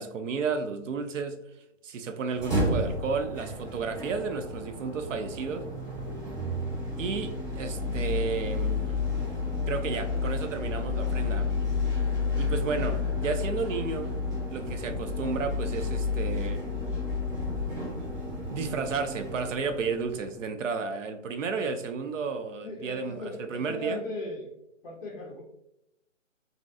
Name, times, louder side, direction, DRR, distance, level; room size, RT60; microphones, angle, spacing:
voice 1, 0.0-1.4 1.8-5.7 7.0-9.0 9.7-11.5 12.4-14.1 14.5-16.6 18.5-24.0, right 5 dB, 75° right, 8 dB, 0.5 m, -32 dB
sound 1, 2.2-20.4, left 3 dB, 35° right, 1.2 m, -31 dB
Sliding door, 5.6-6.5 7.1-7.2 7.8-12.6, right 1 dB, 55° right, 1.4 m, -49 dB
voice 2, 22.6-24.5 24.8-25.4, left 1 dB, 50° left, -5 dB, 0.5 m, -37 dB
2.5 x 2.1 x 2.5 m, 0.83 s
hypercardioid pair, 180°, 38 cm